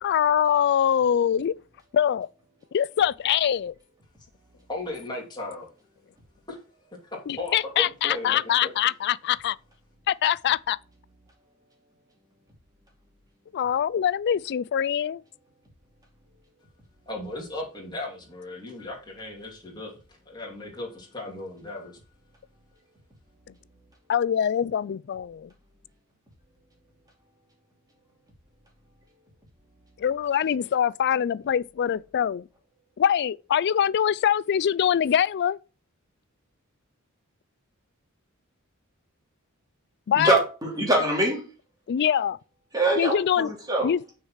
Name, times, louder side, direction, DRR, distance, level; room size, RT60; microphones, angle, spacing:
voice 1, 0.0-1.5 1.9-2.3 2.7-3.7 7.3-9.6 10.1-10.8 13.5-15.2 24.1-25.5 30.0-32.4 33.0-35.6 40.1-40.4 41.9-42.4 43.0-43.5 43.8-44.0, left 9 dB, 50° left, 0.3 m, -23 dB
voice 2, 4.7-5.7 7.4-8.4 17.1-19.9 20.3-21.9, left 2 dB, 20° left, 2.7 m, -36 dB
voice 3, 40.1-41.4 42.7-43.9, right 2 dB, 20° right, 2.8 m, -24 dB
6.4 x 4.8 x 5.7 m
head